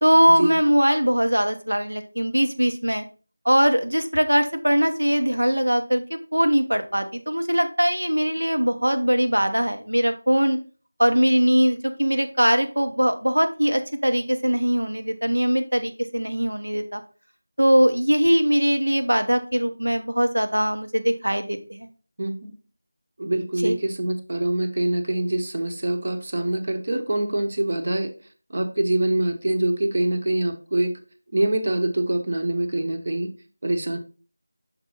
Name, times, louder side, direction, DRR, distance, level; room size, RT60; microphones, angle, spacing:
voice 1, 0.0-3.0 3.4-10.6 11.0-17.0 17.6-21.9 23.6-23.8, equal, 90° right, 6 dB, 1.0 m, -21 dB
voice 2, 22.2-22.5 23.2-28.1 28.5-30.9 31.3-33.3 33.6-34.0, right 1 dB, 45° right, 6 dB, 0.9 m, -24 dB
5.9 x 4.5 x 4.0 m, 0.36 s
figure-of-eight pair, 170°, 0 cm